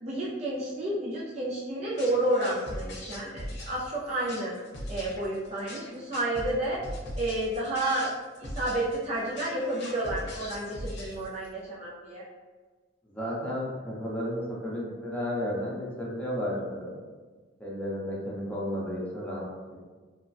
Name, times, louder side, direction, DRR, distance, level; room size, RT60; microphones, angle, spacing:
voice 1, 0.0-4.5 4.9-6.8 7.2-8.1 8.4-12.2, right 1 dB, 35° right, -7 dB, 0.5 m, -30 dB
sound 1, 2.0-11.5, equal, 60° left, 0.6 m, -40 dB
voice 2, 13.0-17.0 17.6-19.5, equal, 5° left, -6 dB, 0.7 m, -33 dB
3.0 x 2.2 x 2.6 m, 1.4 s
head